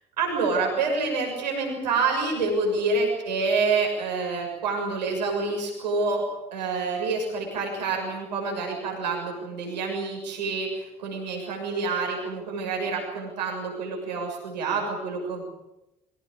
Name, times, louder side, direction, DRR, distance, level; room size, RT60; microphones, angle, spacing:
voice 1, 0.2-6.2 6.5-15.4, right 4 dB, 85° right, 1 dB, 6.7 m, -27 dB
24.0 x 20.0 x 8.7 m, 0.91 s
figure-of-eight pair, 45°, 21 cm